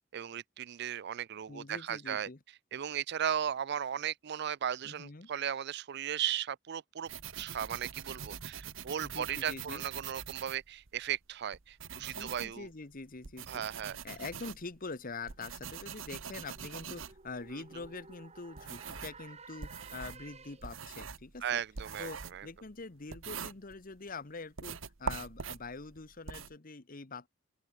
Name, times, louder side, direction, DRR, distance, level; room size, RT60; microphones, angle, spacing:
voice 1, 0.1-2.3 2.7-12.7 13.5-14.0 17.5-17.6 21.4-22.5, right 9 dB, 60° right, 0.5 m, -36 dB
voice 2, 1.5-2.4 4.8-5.3 9.0-9.8 11.9-13.6 14.0-21.6 22.0-27.3, left 3 dB, 45° left, 1.2 m, -45 dB
sound 1, 7.1-11.1 11.5-19.2 19.6-24.1 24.5-26.5, right 6 dB, 85° right, 1.2 m, -44 dB
sound 2, 14.7-20.9, right 4 dB, 35° right, 2.7 m, -55 dB
open air
head